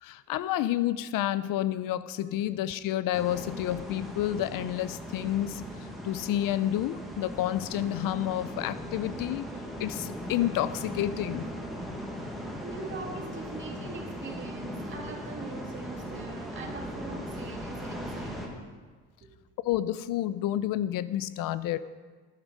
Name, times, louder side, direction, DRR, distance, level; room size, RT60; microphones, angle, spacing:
voice 1, 0.0-5.6 6.0-9.5 9.8-11.4 19.6-21.8, left 13 dB, 80° left, 15 dB, 0.6 m, -29 dB
sound 1, 3.1-18.5, equal, ahead, 1.6 m, -39 dB
voice 2, 12.6-18.5 19.2-19.3, right 3 dB, 35° right, 0 dB, 2.2 m, -42 dB
11.5 x 11.5 x 5.4 m, 1.4 s
cardioid pair, 160°, 33 cm